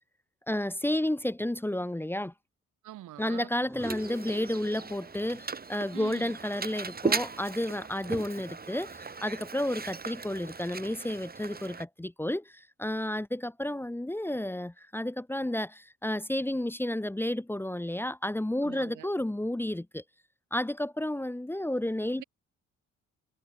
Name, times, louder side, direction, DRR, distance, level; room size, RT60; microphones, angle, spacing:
voice 1, 0.5-2.3 3.2-20.0 20.5-22.2, left 1 dB, 5° left, 1.5 m, -31 dB
voice 2, 2.8-3.5 5.9-6.3 18.6-19.1 22.2-22.3, right 14 dB, 85° right, 4.4 m, -44 dB
sound 1, 3.6-5.4 5.7-7.9, right 1 dB, 10° right, 3.0 m, -46 dB
Mechanisms, 3.8-11.9, right 4 dB, 30° right, 5.1 m, -37 dB
cardioid pair, 90°, 30 cm